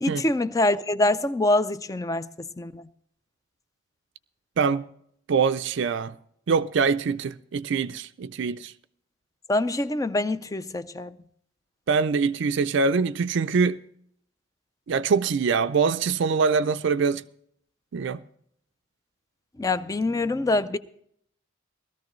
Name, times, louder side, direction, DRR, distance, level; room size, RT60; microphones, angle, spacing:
voice 1, 0.0-2.8 9.5-11.1 19.6-20.8, left 2 dB, 15° left, 0.4 m, -25 dB
voice 2, 4.6-4.9 5.3-6.1 6.5-8.7 11.9-13.8 14.9-17.2 17.9-18.2, right 5 dB, 60° right, 0.4 m, -24 dB
17.5 x 13.5 x 3.1 m
head